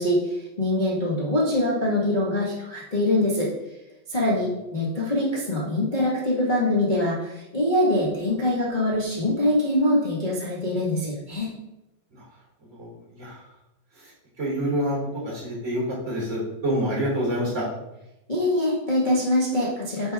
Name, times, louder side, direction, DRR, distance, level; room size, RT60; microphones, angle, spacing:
voice 1, 0.0-3.5 4.1-11.5 18.3-20.1, left 1 dB, 45° left, -7 dB, 0.5 m, -24 dB
voice 2, 12.7-13.4 13.9-14.1 14.4-15.0 15.2-17.7, equal, 20° right, -4 dB, 3.2 m, -27 dB
9.4 x 5.4 x 3.6 m, 0.91 s
omnidirectional pair, 3.9 m